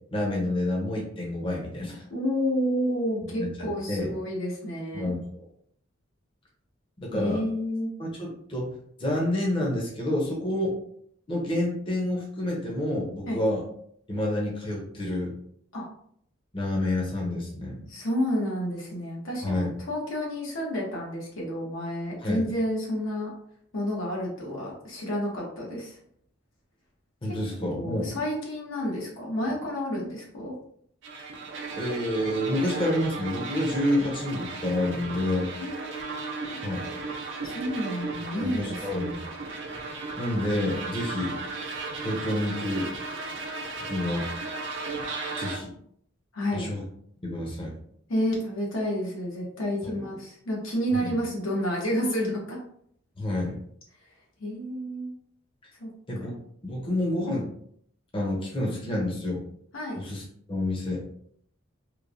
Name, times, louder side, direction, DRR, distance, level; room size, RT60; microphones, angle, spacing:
voice 1, 0.1-2.0 3.3-3.5 3.9-4.1 4.9-5.4 7.0-7.4 8.0-8.7 9.0-10.8 11.3-13.6 14.1-15.4 16.5-17.8 19.4-19.7 22.2-22.5 27.2-28.1 31.7-35.5 36.6-36.8 38.4-39.2 40.2-41.4 42.0-42.9 43.8-44.3 45.4-45.7 46.5-46.8 47.2-47.8 49.9-50.0 51.0-51.1 53.2-53.6 56.1-56.4 56.6-57.5 58.1-59.4 59.9-61.1, left 1 dB, 25° left, -2 dB, 0.6 m, -28 dB
voice 2, 2.1-5.1 7.1-7.9 13.3-13.4 15.7-15.9 17.9-23.3 23.7-26.0 27.6-30.5 35.6-36.6 37.4-39.2 46.3-46.7 48.1-52.6 54.4-55.1 55.8-55.9 59.7-60.0, equal, 90° left, -3 dB, 1.0 m, -30 dB
sound 1, 31.0-45.6, right 3 dB, 65° right, 0.5 m, -35 dB
3.0 x 2.1 x 2.5 m, 0.65 s
head